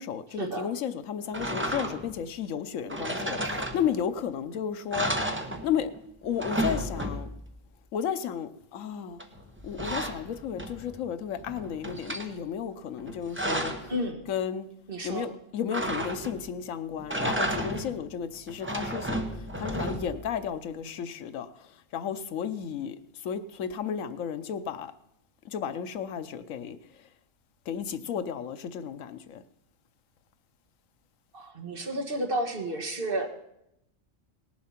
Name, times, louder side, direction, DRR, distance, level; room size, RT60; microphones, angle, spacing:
voice 1, 0.0-5.1 5.6-5.9 6.2-7.3 7.9-9.2 9.6-13.9 14.3-14.7 15.0-24.9 25.4-27.1 27.7-29.4, left 8 dB, 90° left, 1.2 m, -33 dB
sound 1, 1.3-2.2 2.9-4.2 4.5-4.6 4.9-6.0 6.2-7.5 9.2-11.0 11.4-12.3 13.0-13.9 15.7-16.5 17.0-18.0 18.5-20.3, right 1 dB, 10° right, 1.0 m, -32 dB
voice 2, 13.9-14.2 14.9-15.3 31.3-33.3, right 1 dB, 45° right, 1.9 m, -31 dB
18.5 x 7.5 x 5.8 m
omnidirectional pair, 1.3 m